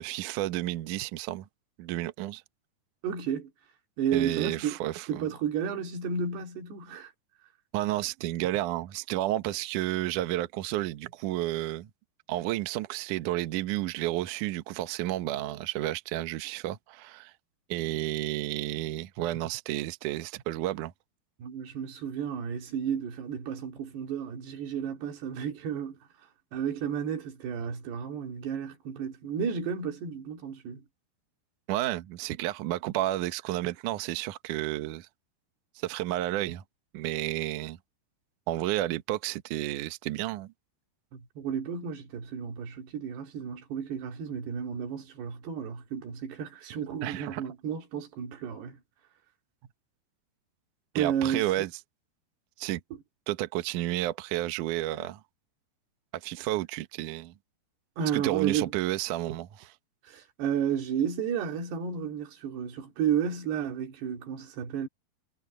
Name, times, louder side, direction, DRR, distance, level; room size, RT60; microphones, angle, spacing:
voice 1, 0.0-1.5 1.8-2.4 4.1-5.2 7.7-11.9 12.3-17.3 17.7-20.9 31.7-35.1 35.8-36.6 36.9-37.8 38.5-40.5 47.0-47.4 51.0-51.7 52.6-52.8 53.3-55.2 56.1-57.3 58.1-59.7, right 15 dB, 85° right, 1.8 m, -31 dB
voice 2, 3.0-3.5 4.0-4.8 5.1-7.1 21.4-26.0 26.5-30.8 41.1-48.8 51.0-51.7 58.0-58.7 60.0-64.9, right 7 dB, 65° right, 4.6 m, -32 dB
omnidirectional pair, 5.2 m